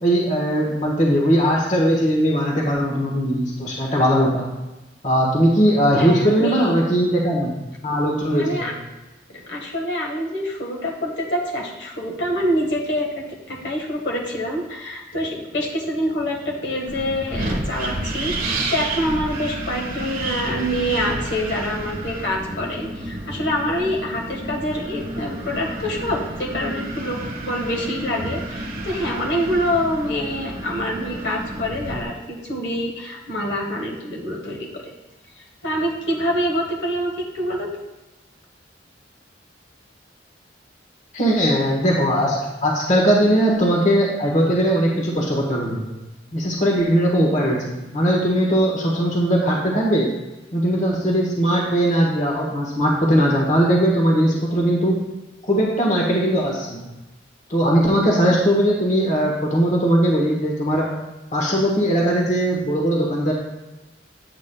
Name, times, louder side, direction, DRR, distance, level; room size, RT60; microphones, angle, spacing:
voice 1, 0.0-4.5 5.0-7.5 7.8-8.7 41.1-46.0 46.3-50.1 50.5-55.0 55.4-56.9 57.5-60.9 61.3-63.3, equal, 45° left, -2 dB, 1.3 m, -19 dB
voice 2, 5.9-6.7 8.3-8.7 9.3-34.9 35.3-37.7, equal, 70° left, -1 dB, 1.5 m, -26 dB
Wind, 16.9-32.0, right 2 dB, 50° right, 1.2 m, -30 dB
8.4 x 8.0 x 2.3 m, 1.0 s
head